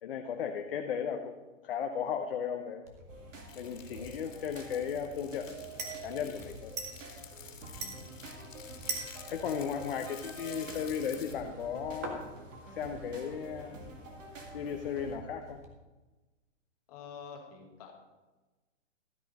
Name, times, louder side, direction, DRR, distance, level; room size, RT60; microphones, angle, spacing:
voice 1, 0.0-2.8 3.6-6.7 9.3-12.3 12.7-13.9 14.5-15.6, left 7 dB, 50° left, 4 dB, 0.8 m, -36 dB
sound 1, 2.8-15.6, right 3 dB, 15° right, 0.5 m, -46 dB
sound 2, 3.1-15.2, right 3 dB, 85° right, 2.5 m, -49 dB
sound 3, 3.5-11.3, left 7 dB, 80° left, 2.0 m, -51 dB
voice 2, 7.8-8.3 9.8-10.3 16.9-17.9, left 6 dB, 30° left, 1 dB, 1.6 m, -49 dB
12.5 x 8.3 x 4.1 m, 1.2 s
hypercardioid pair, 170°, 37 cm